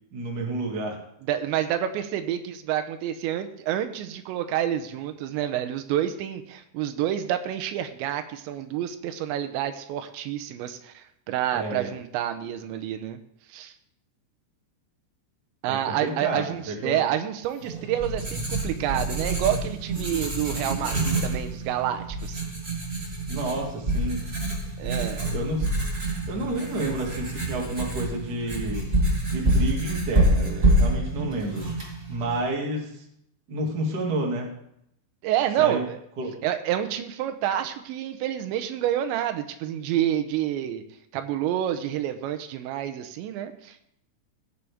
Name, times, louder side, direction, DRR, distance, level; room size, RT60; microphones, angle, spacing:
voice 1, 0.1-1.0 11.5-11.9 15.7-17.0 23.3-24.2 25.3-25.7 26.3-28.9 29.3-31.6 32.1-33.0 33.5-34.5 35.6-35.8 36.2-36.3, right 2 dB, 40° right, -1 dB, 1.5 m, -30 dB
voice 2, 1.2-13.2 13.5-13.7 15.6-22.4 24.8-25.3 35.2-36.0 36.4-40.8 41.1-43.8, right 11 dB, 85° right, 8 dB, 3.0 m, -28 dB
Writing, 17.6-32.4, right 1 dB, 20° right, 1.6 m, -27 dB
17.0 x 6.7 x 3.5 m, 0.75 s
omnidirectional pair, 5.2 m